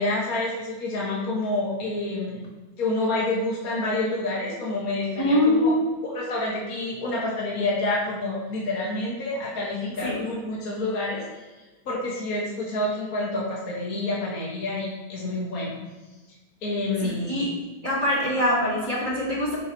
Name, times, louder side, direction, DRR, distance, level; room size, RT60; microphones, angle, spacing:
voice 1, 0.0-2.5 2.8-5.7 6.1-11.2 11.9-15.8 16.6-17.3, left 2 dB, 35° left, -5 dB, 1.8 m, -28 dB
voice 2, 5.2-5.9 10.0-10.2 17.0-17.5 17.8-19.6, left 1 dB, 20° right, -6 dB, 1.7 m, -23 dB
11.5 x 6.8 x 3.2 m, 1.2 s
omnidirectional pair, 3.5 m